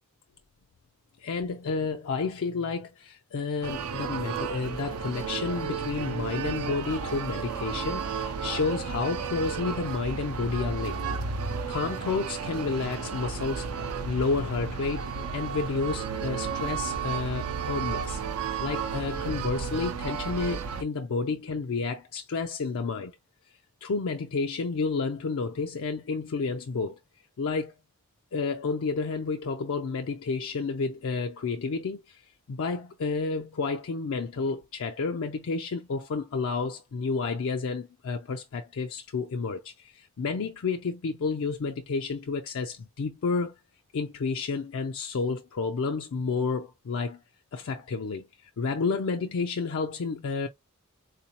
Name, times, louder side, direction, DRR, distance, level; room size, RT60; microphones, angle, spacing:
voice 1, 1.2-11.0 11.7-13.7 14.1-18.2 18.6-23.1 23.8-27.0 27.4-27.7 28.3-32.2 32.5-43.5 43.9-47.2 47.5-50.5, left 4 dB, 65° left, 0.4 m, -30 dB
sound 1, 3.6-20.8, right 6 dB, 80° right, 0.5 m, -33 dB
3.7 x 2.6 x 2.8 m
head